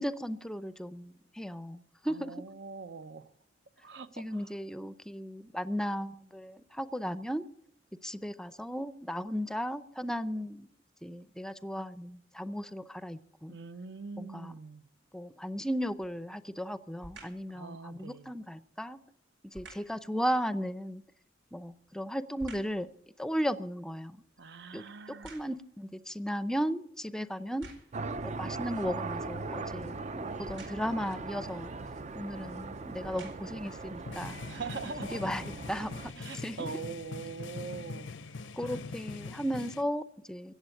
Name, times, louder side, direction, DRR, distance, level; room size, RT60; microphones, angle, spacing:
voice 1, 0.0-2.3 4.2-7.4 8.0-10.7 11.0-13.5 14.2-14.5 15.1-19.0 19.5-21.0 21.5-22.9 23.2-24.2 24.7-24.8 25.2-27.7 28.2-31.7 32.2-34.4 35.1-35.4 35.7-35.9 36.4-36.6 38.6-40.5, equal, 5° left, 0.6 m, -35 dB
voice 2, 2.1-3.3 3.8-4.5 13.5-14.9 17.5-18.3 24.4-25.5 34.5-35.5 36.2-38.8, right 5 dB, 65° right, 0.8 m, -43 dB
sound 1, 15.8-16.2 17.0-17.5 19.5-20.0 21.4-22.8 23.3-25.8 26.5-26.6 27.4-28.1 30.4-31.0 32.0-32.2 32.8-33.7 34.3-34.4, right 2 dB, 85° right, 4.6 m, -51 dB
sound 2, 27.9-36.1, right 3 dB, 40° right, 0.5 m, -39 dB
Drumming practise, 32.3-32.5 33.6-39.8, left 3 dB, 80° left, 0.7 m, -43 dB
16.0 x 8.0 x 9.8 m
head